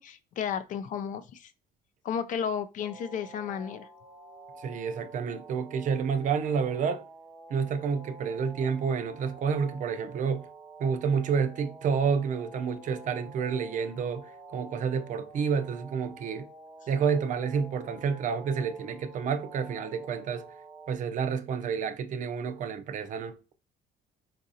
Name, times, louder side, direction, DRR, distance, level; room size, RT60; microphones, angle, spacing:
voice 1, 0.0-1.5 2.0-3.9, left 7 dB, 50° left, 0.4 m, -33 dB
sound 1, 2.8-21.0, right 2 dB, 10° right, 0.7 m, -49 dB
voice 2, 4.6-7.0 7.5-10.5 10.8-16.5 16.9-20.5 20.9-23.4, right 6 dB, 50° right, 0.4 m, -29 dB
3.9 x 2.5 x 2.7 m
cardioid pair, 110°, 17 cm